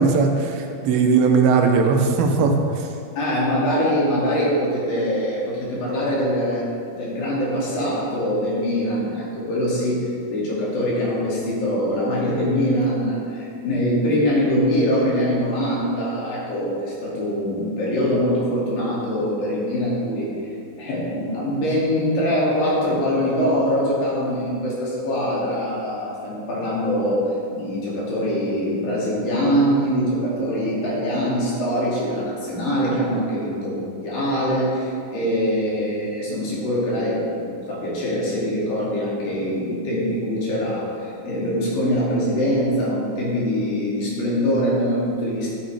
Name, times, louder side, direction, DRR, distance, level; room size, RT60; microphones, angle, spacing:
voice 1, 0.0-2.9, right 4 dB, 85° right, 3 dB, 2.7 m, -18 dB
voice 2, 3.2-20.5 20.8-27.2 27.5-45.5, equal, 75° left, -6 dB, 4.1 m, -23 dB
12.0 x 8.2 x 3.4 m, 2.4 s
omnidirectional pair, 4.1 m